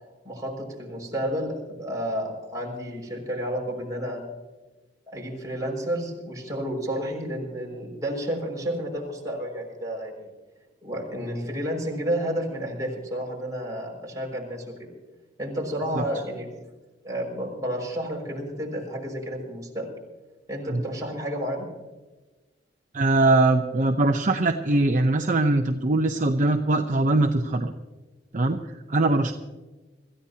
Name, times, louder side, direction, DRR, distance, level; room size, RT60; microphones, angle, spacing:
voice 1, 0.2-4.2 5.1-10.3 10.8-14.7 15.4-16.5 17.0-19.9 20.5-21.6, equal, 20° right, -2 dB, 5.7 m, -31 dB
voice 2, 22.9-27.7 28.3-28.6 28.9-29.3, right 2 dB, 45° right, 5 dB, 0.8 m, -21 dB
26.0 x 15.0 x 2.8 m, 1.2 s
head